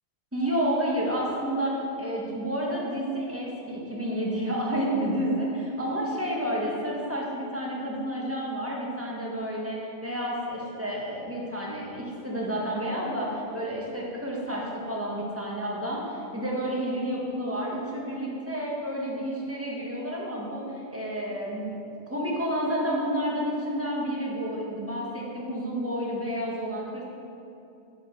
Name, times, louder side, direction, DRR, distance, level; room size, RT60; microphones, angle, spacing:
voice 1, 0.3-21.8 22.1-27.0, equal, 10° right, -4 dB, 1.5 m, -30 dB
8.4 x 5.0 x 6.6 m, 2.7 s
omnidirectional pair, 1.3 m